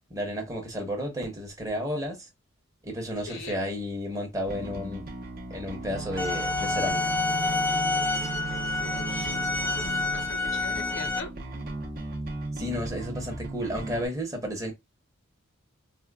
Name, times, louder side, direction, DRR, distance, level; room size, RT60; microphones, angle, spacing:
voice 1, 0.1-2.3 2.8-5.1 5.5-7.1 12.6-14.7, equal, 15° right, 0.8 m, -32 dB
voice 2, 3.2-3.6 8.8-9.3 9.6-11.3, left 3 dB, 60° left, 0.6 m, -41 dB
Bass guitar, 4.5-14.1, right 1 dB, 40° right, 0.7 m, -37 dB
Wind instrument woodwind instrument, 5.8-10.3, right 8 dB, 90° right, 0.4 m, -37 dB
sound 1, 6.2-11.2, left 3 dB, 10° left, 0.5 m, -28 dB
4.2 x 2.1 x 2.2 m
head